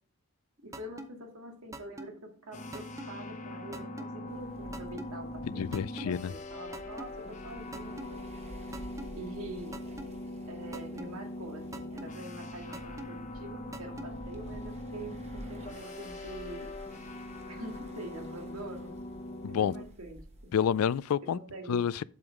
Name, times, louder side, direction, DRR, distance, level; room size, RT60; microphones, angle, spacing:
voice 1, 0.6-8.2 9.2-9.8 10.5-16.7 17.5-18.9 19.5-20.5 21.2-21.8, right 1 dB, 80° right, 2.0 m, -45 dB
sound 1, 0.7-1.1 1.7-2.1 2.7-3.1 3.7-4.1 4.7-5.1 5.7-6.1 6.7-7.1 7.7-8.1 8.7-9.1 9.7-10.1 10.7-11.1 11.7-12.1 12.7-13.1 13.7-14.1, right 1 dB, 15° right, 0.7 m, -42 dB
sound 2, 2.5-19.9, left 1 dB, 35° left, 0.9 m, -42 dB
sound 3, 4.3-21.1, right 1 dB, 30° right, 1.2 m, -51 dB
voice 2, 5.4-6.3 19.4-19.7 20.5-21.4 21.7-22.0, left 8 dB, 80° left, 0.3 m, -29 dB
7.9 x 7.1 x 3.6 m
head